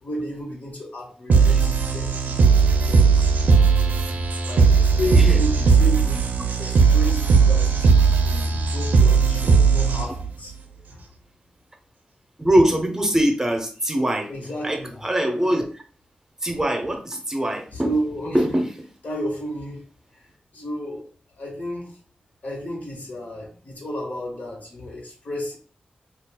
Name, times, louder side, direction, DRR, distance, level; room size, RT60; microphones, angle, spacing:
voice 1, 0.0-3.3 4.4-11.1 14.3-15.0 17.7-18.6 19.0-19.8 20.1-20.3 20.5-22.0 22.4-25.6, equal, 65° left, 1.4 m, -32 dB
sound 1, 1.3-10.3, right 5 dB, 85° right, 0.5 m, -17 dB
voice 2, 12.4-14.3 14.6-15.7 16.4-17.9 18.3-18.7, right 1 dB, 20° right, 0.7 m, -22 dB
5.1 x 2.4 x 2.2 m
cardioid pair, 65°, 3 cm